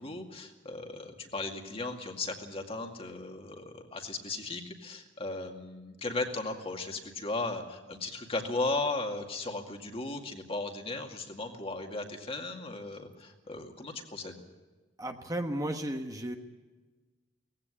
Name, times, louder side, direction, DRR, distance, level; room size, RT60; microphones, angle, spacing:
voice 1, 0.0-14.4, left 2 dB, 30° left, 3 dB, 2.3 m, -36 dB
voice 2, 15.0-16.4, right 1 dB, 20° right, 4 dB, 1.2 m, -34 dB
19.0 x 16.0 x 10.0 m, 1.2 s
head